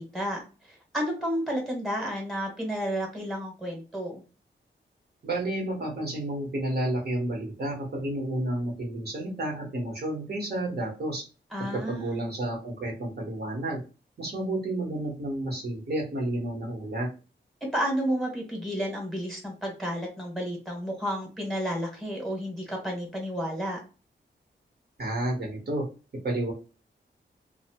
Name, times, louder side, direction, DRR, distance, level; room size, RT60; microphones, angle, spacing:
voice 1, 0.0-4.2 11.5-12.2 17.7-23.8, equal, ahead, 0 dB, 1.1 m, -31 dB
voice 2, 5.2-11.2 11.6-13.8 14.2-17.1 25.0-25.8 26.2-26.5, right 1 dB, 55° right, 0 dB, 1.0 m, -31 dB
2.7 x 2.0 x 2.8 m, 0.33 s
wide cardioid pair, 75°, 20 cm